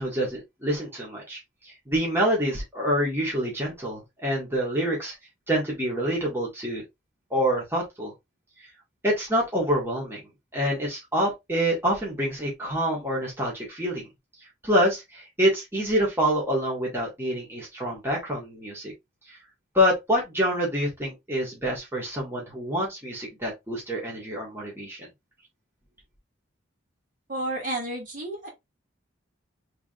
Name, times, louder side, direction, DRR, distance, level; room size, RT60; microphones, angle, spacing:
voice 1, 0.0-5.2 5.5-6.8 7.3-8.1 9.0-10.2 10.5-14.1 14.6-18.9 19.3-19.4 19.7-25.0, equal, 10° right, 1.7 m, -26 dB
voice 2, 27.3-28.5, right 1 dB, 40° right, 1.9 m, -31 dB
4.8 x 3.2 x 2.4 m
head